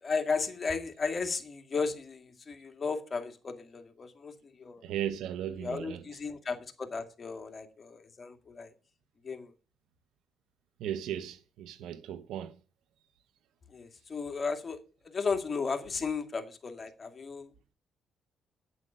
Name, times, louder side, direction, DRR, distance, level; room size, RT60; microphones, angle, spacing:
voice 1, 0.0-4.8 5.6-8.7 9.2-9.5 13.7-17.5, left 4 dB, 35° left, 2.1 m, -35 dB
voice 2, 4.8-6.2 10.8-12.5, right 10 dB, 85° right, 1.1 m, -36 dB
8.7 x 8.0 x 6.7 m
cardioid pair, 90°, 0 cm